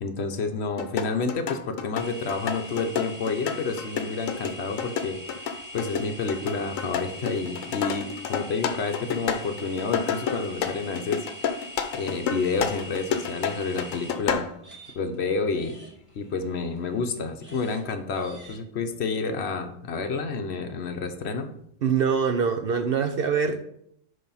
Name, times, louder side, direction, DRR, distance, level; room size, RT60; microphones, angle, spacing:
voice 1, 0.0-5.2 5.5-11.6 11.9-14.5 15.0-15.8 16.1-21.5, left 4 dB, 60° left, 7 dB, 1.0 m, -29 dB
sound 1, 0.8-14.6, left 7 dB, 85° left, 1.1 m, -30 dB
sound 2, 2.0-15.2 15.5-17.8 18.1-18.6, left 1 dB, 15° right, 2.2 m, -42 dB
voice 2, 21.8-23.6, right 6 dB, 60° right, 6 dB, 0.7 m, -24 dB
8.8 x 3.4 x 5.5 m, 0.71 s
omnidirectional pair, 1.3 m